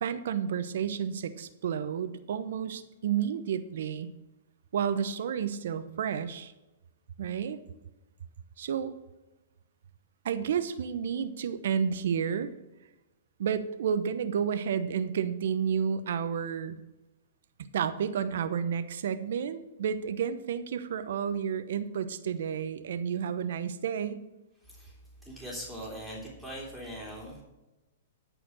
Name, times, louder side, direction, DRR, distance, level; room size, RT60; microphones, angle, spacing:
voice 1, 0.0-4.1 4.7-6.5 7.2-7.6 8.6-8.9 10.2-12.5 13.4-16.8 17.7-24.3, right 7 dB, 70° right, 11 dB, 0.9 m, -31 dB
voice 2, 24.6-25.0 25.2-27.4, equal, ahead, -4 dB, 3.3 m, -41 dB
13.0 x 5.0 x 6.2 m, 1.0 s
hypercardioid pair, 135°, 0 cm